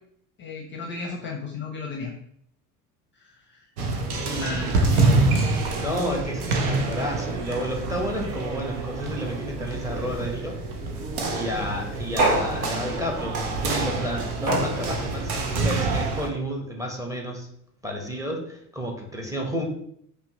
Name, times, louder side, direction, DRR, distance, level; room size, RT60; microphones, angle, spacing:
voice 1, 0.4-2.1 3.1-3.7 4.4-5.1, left 4 dB, 25° left, 1 dB, 0.6 m, -34 dB
sound 1, 3.8-16.3, right 3 dB, 70° right, 0.8 m, -27 dB
voice 2, 4.3-4.7 5.8-10.6 11.3-17.5 17.8-19.6, equal, 5° right, 0 dB, 0.8 m, -31 dB
sound 2, 12.2-13.2 14.5-15.3, right 2 dB, 50° right, 1.2 m, -26 dB
5.3 x 2.2 x 2.7 m, 0.69 s
figure-of-eight pair, 60°, 45 cm